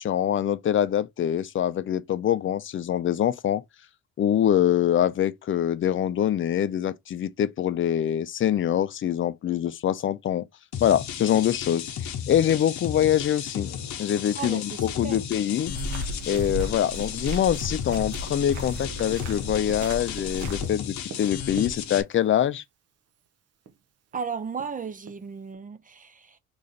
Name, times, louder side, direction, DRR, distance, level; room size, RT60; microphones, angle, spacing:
voice 1, 0.0-3.6 4.2-10.4 10.8-13.7 14.0-14.7 15.0-15.7 16.3-22.6, left 10 dB, 40° left, 0.5 m, -24 dB
sound 1, 10.7-22.0, left 8 dB, 70° left, 0.7 m, -34 dB
voice 2, 14.4-15.2 24.1-26.4, right 6 dB, 30° right, 0.4 m, -35 dB
sound 2, 15.7-20.6, right 1 dB, 75° right, 1.1 m, -35 dB
Tap, 19.7-22.3 23.3-23.4 23.7-23.8 24.1-25.5, right 6 dB, 55° right, 0.7 m, -44 dB
3.1 x 2.6 x 3.7 m
cardioid pair, 90°, 30 cm